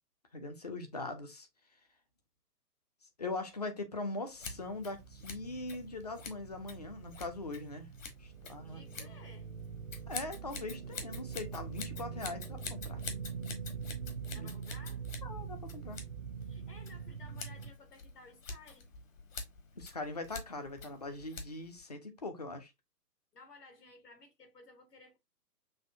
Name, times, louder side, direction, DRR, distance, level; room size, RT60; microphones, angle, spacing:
voice 1, 0.3-1.5 3.2-7.9 8.2-9.1 10.1-13.0 14.4-14.5 15.2-16.0 19.8-22.7, left 2 dB, 25° left, 0.5 m, -41 dB
Scissors, 4.3-21.8, left 4 dB, 55° left, 1.3 m, -48 dB
sound 1, 4.4-17.7, right 6 dB, 40° right, 0.6 m, -44 dB
voice 2, 8.7-9.5 14.3-15.0 16.4-18.9 23.3-25.2, left 3 dB, 75° left, 1.7 m, -56 dB
6.4 x 2.6 x 2.5 m
figure-of-eight pair, 130°, 48 cm